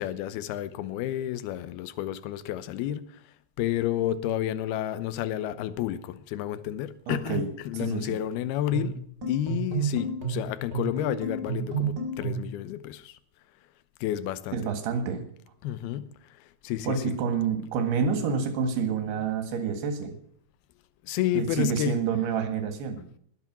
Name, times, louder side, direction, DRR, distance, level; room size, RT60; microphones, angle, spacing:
voice 1, 0.0-3.1 3.6-9.0 9.3-13.2 14.0-14.7 15.6-16.1 16.6-17.2 19.2-19.3 21.0-22.0, left 12 dB, 75° left, 2.6 m, -30 dB
voice 2, 7.1-7.5 7.7-8.2 14.5-15.2 16.9-20.1 21.3-23.0, right 6 dB, 75° right, 3.7 m, -28 dB
sound 1, 8.7-12.6, right 5 dB, 25° right, 4.3 m, -31 dB
20.5 x 8.4 x 6.1 m
omnidirectional pair, 4.8 m